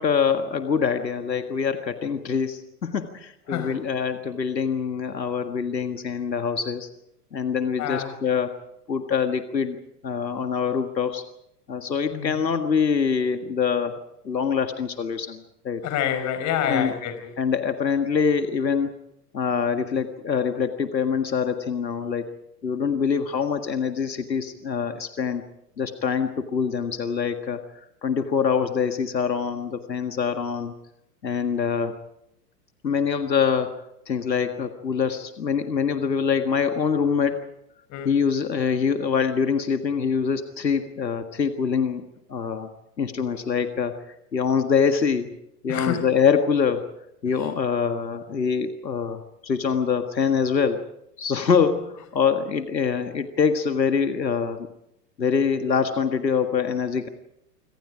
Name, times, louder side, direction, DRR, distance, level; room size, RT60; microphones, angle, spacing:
voice 1, 0.0-6.9 7.3-8.5 8.9-9.8 10.0-11.2 11.7-14.0 14.2-15.8 16.6-16.9 17.4-18.9 19.3-22.3 22.6-25.4 25.8-27.6 28.0-30.7 31.2-32.0 32.8-37.5 38.1-42.0 42.3-42.7 43.0-43.9 44.3-45.3 45.6-46.9 47.2-50.9 51.2-54.7 55.2-57.1, left 6 dB, 90° left, 7 dB, 1.8 m, -24 dB
voice 2, 7.8-8.2 12.1-12.4 15.8-17.3 37.9-38.2 45.7-46.1, left 9 dB, 35° left, 9 dB, 5.2 m, -27 dB
26.0 x 26.0 x 5.0 m, 0.78 s
hypercardioid pair, 105°, 49 cm